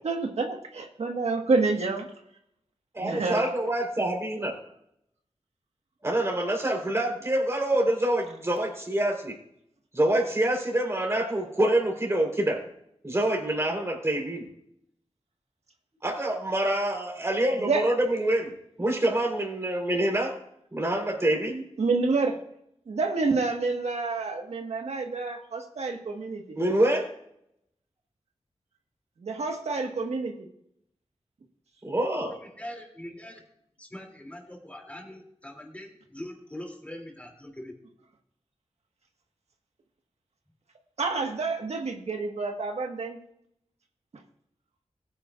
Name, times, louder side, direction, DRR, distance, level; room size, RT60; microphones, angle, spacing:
voice 1, 0.0-2.1 3.0-3.5 17.6-17.8 21.8-22.4 22.9-26.4 29.2-30.3 41.0-43.2, right 3 dB, 85° right, 4 dB, 1.6 m, -28 dB
voice 2, 2.9-4.5 6.0-9.3 9.9-12.6 13.0-14.5 16.0-18.5 18.8-20.3 20.7-21.6 26.6-27.1 31.8-32.3, right 1 dB, 25° right, 0 dB, 3.9 m, -26 dB
voice 3, 32.2-33.4 33.8-37.7, left 1 dB, 15° left, 0 dB, 2.9 m, -42 dB
20.5 x 9.5 x 2.5 m, 0.75 s
wide cardioid pair, 105°, 11 cm